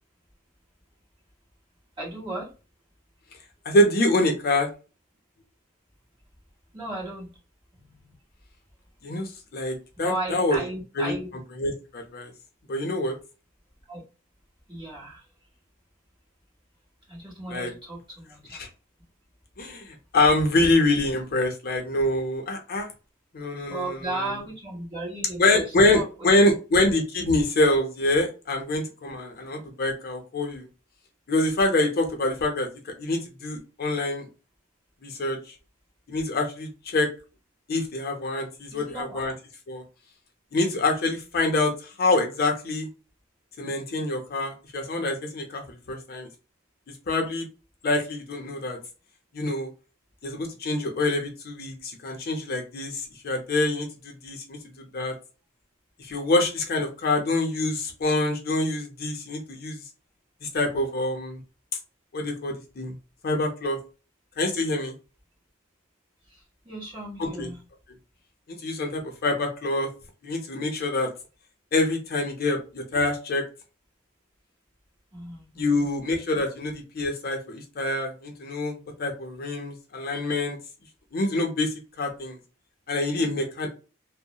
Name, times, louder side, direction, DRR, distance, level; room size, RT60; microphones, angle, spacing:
voice 1, 2.0-2.5 6.7-7.4 7.7-8.1 9.9-11.3 13.9-14.0 14.7-15.3 17.1-18.6 23.7-26.5 38.7-39.2 66.3-67.6 75.1-75.9, right 2 dB, 25° right, -4 dB, 1.3 m, -35 dB
voice 2, 3.6-4.7 9.0-10.6 11.0-11.1 11.6-12.3 12.7-13.2 17.5-17.7 18.6-18.7 19.6-22.9 23.3-24.0 25.4-30.7 31.3-34.3 35.0-35.4 36.1-37.1 37.7-39.3 39.7-39.8 40.5-42.9 43.6-46.3 47.1-47.5 47.8-48.8 49.3-49.7 50.2-54.6 54.9-55.1 56.0-59.8 60.4-61.4 62.1-62.9 63.2-63.8 64.4-64.9 67.2-67.5 68.5-69.9 70.2-71.1 71.7-73.4 75.6-80.6 81.1-82.4 82.9-83.7, left 2 dB, 50° left, 2 dB, 0.6 m, -25 dB
2.7 x 2.0 x 2.2 m, 0.33 s
head